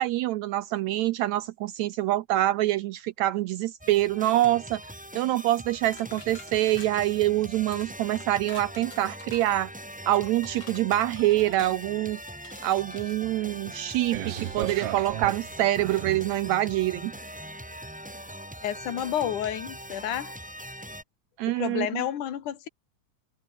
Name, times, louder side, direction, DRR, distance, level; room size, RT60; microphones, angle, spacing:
voice 1, 0.0-4.8 5.2-9.7 10.1-12.2 12.6-17.1 21.4-22.0, right 15 dB, 80° right, 1.6 m, -25 dB
sound 1, 3.8-21.0, equal, ahead, 2.9 m, -42 dB
sound 2, 5.9-7.1 7.7-7.9 8.2-9.6 10.1-11.8 12.4-13.2 13.7-14.0, left 3 dB, 35° left, 5.7 m, -48 dB
sound 3, 14.1-16.4 17.1-17.2, right 13 dB, 65° right, 1.6 m, -34 dB
voice 2, 18.6-20.3 21.4-22.7, left 10 dB, 70° left, 3.5 m, -30 dB
omnidirectional pair, 3.7 m